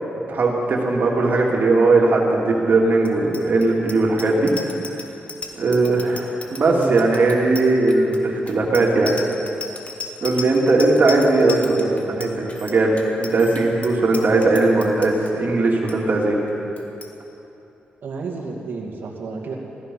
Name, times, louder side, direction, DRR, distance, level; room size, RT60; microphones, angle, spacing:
voice 1, 0.3-4.5 5.6-9.1 10.2-11.9 12.2-16.4, right 2 dB, 55° right, -2 dB, 2.8 m, -18 dB
Bicycle bell, 3.0-15.3 15.7-15.9 16.2-16.5 16.8-17.1, left 3 dB, 40° left, 1.6 m, -36 dB
voice 2, 6.7-7.0 11.5-12.4 18.0-19.6, right 4 dB, 75° right, 0 dB, 2.2 m, -31 dB
16.5 x 13.5 x 5.7 m, 2.9 s
cardioid pair, 80°, 4 cm